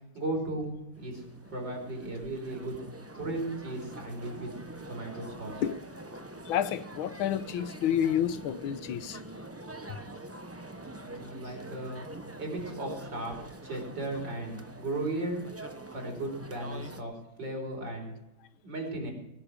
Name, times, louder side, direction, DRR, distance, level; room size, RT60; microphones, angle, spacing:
voice 1, 0.1-0.7 1.0-1.2 1.5-2.8 3.1-4.5 4.9-5.6 11.0-12.0 12.4-15.4 15.9-18.2 18.6-19.1, right 2 dB, 60° right, 4.9 m, -36 dB
sound 1, 0.9-17.0, right 2 dB, 20° right, 0.3 m, -45 dB
voice 2, 6.4-9.2 9.9-10.0, left 9 dB, 85° left, 1.7 m, -30 dB
20.0 x 10.5 x 4.9 m
omnidirectional pair, 2.2 m